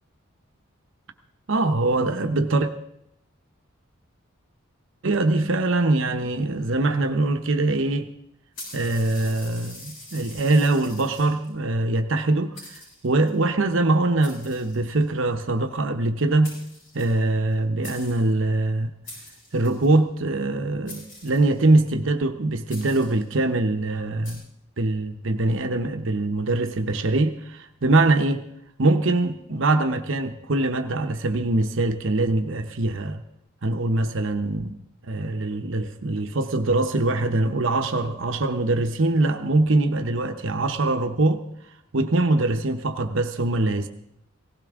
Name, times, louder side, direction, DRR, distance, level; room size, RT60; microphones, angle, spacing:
voice 1, 1.5-2.7 5.0-8.1 8.7-16.5 16.9-18.9 19.5-24.4 24.8-28.4 28.8-33.2 33.6-41.4 41.9-43.9, right 2 dB, 65° right, 0.8 m, -23 dB
sound 1, 8.5-11.5 12.2-12.3 12.5-13.3 14.2-15.2 16.2-16.3 16.4-17.5 17.8-18.3 19.0-19.9 20.9-21.8 22.7-23.3 24.2-24.3, left 1 dB, 65° left, 7.1 m, -44 dB
18.0 x 16.0 x 3.6 m
head